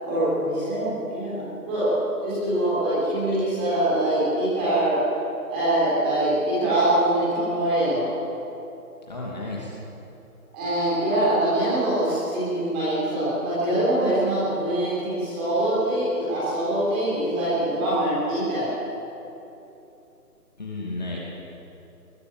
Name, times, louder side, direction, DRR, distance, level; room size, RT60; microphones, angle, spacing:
voice 1, 0.0-1.9 2.2-5.0 5.5-8.0 10.5-18.7, right 1 dB, 5° right, -10 dB, 3.7 m, -24 dB
voice 2, 9.1-9.7 20.6-21.2, left 2 dB, 25° left, -4 dB, 2.5 m, -32 dB
22.0 x 21.0 x 7.5 m, 2.9 s
figure-of-eight pair, 175°, 46 cm